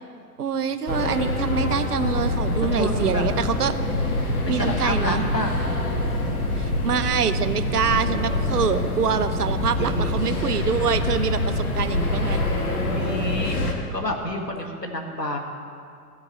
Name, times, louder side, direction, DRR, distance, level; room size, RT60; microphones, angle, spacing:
voice 1, 0.4-3.7 4.5-5.2 6.5-12.4, right 6 dB, 70° right, 12 dB, 0.8 m, -25 dB
sound 1, 0.9-13.7, left 1 dB, 65° left, 1.8 m, -25 dB
voice 2, 2.7-3.3 4.4-5.6 9.7-10.4 12.9-15.4, left 1 dB, 90° left, 2 dB, 1.7 m, -29 dB
14.5 x 4.8 x 8.6 m, 2.3 s
figure-of-eight pair, 110°, 48 cm